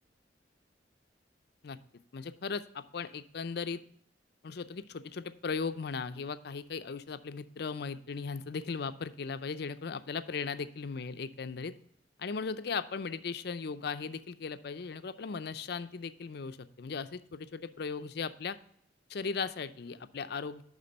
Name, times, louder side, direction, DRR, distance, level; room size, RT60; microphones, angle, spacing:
voice 1, 2.1-3.8 4.4-11.7 12.2-18.6 19.1-20.6, left 5 dB, 60° left, 12 dB, 0.5 m, -37 dB
11.0 x 3.7 x 5.2 m, 0.70 s
head